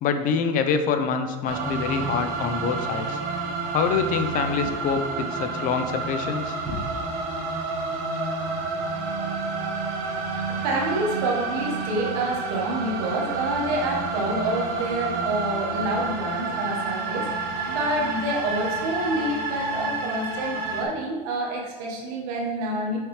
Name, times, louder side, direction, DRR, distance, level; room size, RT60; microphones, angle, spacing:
voice 1, 0.0-3.2 3.7-6.5, left 6 dB, 50° left, 8 dB, 0.6 m, -25 dB
sound 1, 1.5-20.8, right 4 dB, 60° right, 1.3 m, -29 dB
voice 2, 10.6-17.3 17.7-23.0, right 1 dB, 80° right, -1 dB, 1.4 m, -28 dB
6.4 x 4.9 x 3.2 m, 1.3 s
supercardioid pair, 125°, 18 cm